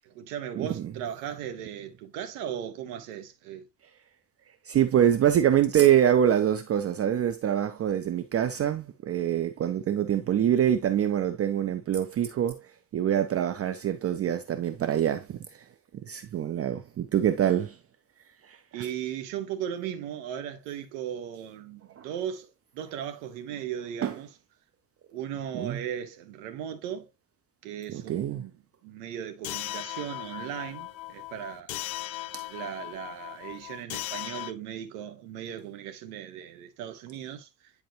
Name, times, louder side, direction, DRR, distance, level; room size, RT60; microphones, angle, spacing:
voice 1, 0.0-3.7 18.7-24.3 25.1-27.1 27.6-28.5 28.8-31.7 32.5-37.7, right 9 dB, 60° right, 1.5 m, -37 dB
voice 2, 0.5-0.9 4.7-12.6 12.9-15.4 16.1-17.8 18.8-18.9 22.0-22.1 24.0-24.1 25.5-25.8 27.9-28.4 32.3-32.4, right 10 dB, 30° right, 0.7 m, -25 dB
sound 1, 29.4-34.5, left 15 dB, 55° left, 0.8 m, -38 dB
10.0 x 4.2 x 2.9 m
figure-of-eight pair, 55°, 49 cm